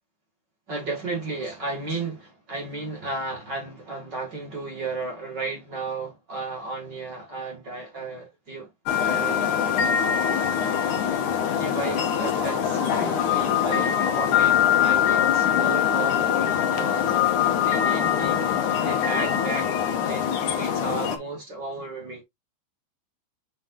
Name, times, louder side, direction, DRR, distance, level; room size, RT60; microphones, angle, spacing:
voice 1, 0.7-8.7 9.0-9.6 10.5-10.6 11.6-17.1 17.6-19.7 20.0-22.2, right 3 dB, 60° right, 1.1 m, -34 dB
sound 1, 8.9-21.2, left 9 dB, 75° left, 1.7 m, -23 dB
7.5 x 5.3 x 2.4 m
omnidirectional pair, 5.5 m